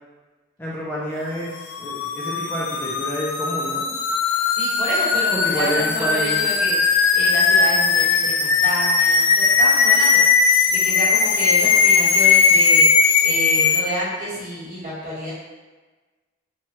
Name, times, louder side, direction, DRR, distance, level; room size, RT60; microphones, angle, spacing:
voice 1, 0.6-3.9 5.3-6.4, equal, 10° left, -6 dB, 0.4 m, -28 dB
sound 1, 1.6-13.8, left 5 dB, 90° left, 0.3 m, -18 dB
voice 2, 4.3-15.3, equal, 45° right, -8 dB, 1.1 m, -29 dB
3.1 x 2.3 x 2.8 m, 1.3 s
head